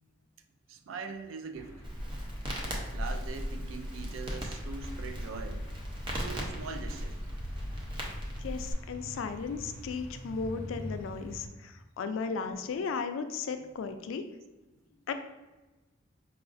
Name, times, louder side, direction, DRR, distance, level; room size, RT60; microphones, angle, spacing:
voice 1, 0.7-1.8 2.9-5.6 6.2-7.2, right 4 dB, 85° right, 8 dB, 0.4 m, -42 dB
sound 1, 1.5-11.5, equal, 10° left, 0.8 m, -45 dB
Crackle, 1.8-8.7, equal, 25° right, 0.5 m, -37 dB
voice 2, 8.4-14.2 15.1-15.2, left 5 dB, 80° left, 8 dB, 0.3 m, -35 dB
4.7 x 2.4 x 2.5 m, 1.1 s
head